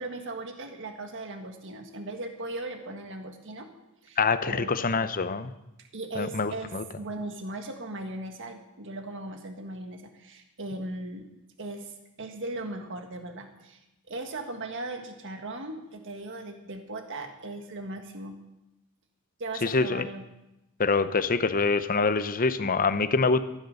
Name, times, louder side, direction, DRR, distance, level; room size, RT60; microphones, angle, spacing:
voice 1, 0.0-3.7 4.0-4.2 4.4-4.8 5.9-11.3 11.6-13.8 14.1-18.4 19.4-20.2, right 2 dB, 60° right, 5 dB, 1.6 m, -38 dB
voice 2, 4.2-5.5 6.2-6.8 19.6-20.1 20.8-23.4, left 4 dB, 40° left, 12 dB, 0.7 m, -25 dB
14.5 x 9.7 x 6.5 m, 0.92 s
head